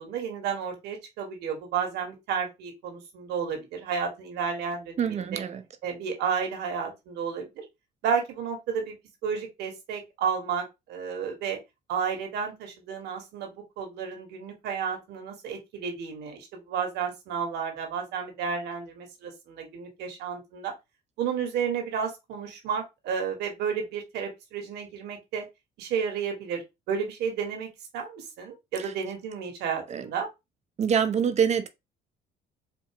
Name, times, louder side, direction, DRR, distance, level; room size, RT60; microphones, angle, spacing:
voice 1, 0.0-5.4 5.8-7.6 8.0-8.9 9.2-11.6 11.9-20.7 21.2-25.4 25.8-27.7 27.9-30.3, right 6 dB, 80° right, 1.5 m, -32 dB
voice 2, 5.0-5.6 28.8-28.9 29.9-30.1 30.8-31.7, right 7 dB, 40° right, 0.7 m, -25 dB
4.4 x 2.7 x 2.9 m
cardioid pair, 110°, 17 cm